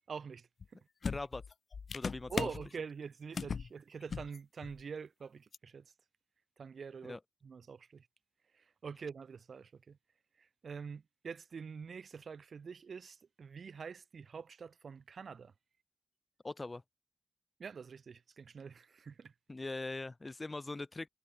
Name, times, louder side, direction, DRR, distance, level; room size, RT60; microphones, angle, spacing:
voice 1, 0.1-0.8 2.3-5.9 6.6-7.2 7.4-8.1 8.5-10.0 10.4-15.5 17.6-19.3, right 6 dB, 65° right, 2.0 m, -46 dB
sound 1, 0.6-0.7 1.0-2.7 3.3-3.7 4.0-4.4 4.6-4.8 5.5-5.6, left 5 dB, 60° left, 0.8 m, -38 dB
voice 2, 1.0-1.4 1.9-2.5 7.0-7.2 16.4-16.8 19.5-21.1, left 2 dB, 30° left, 1.0 m, -41 dB
cardioid pair, 60°, 0 cm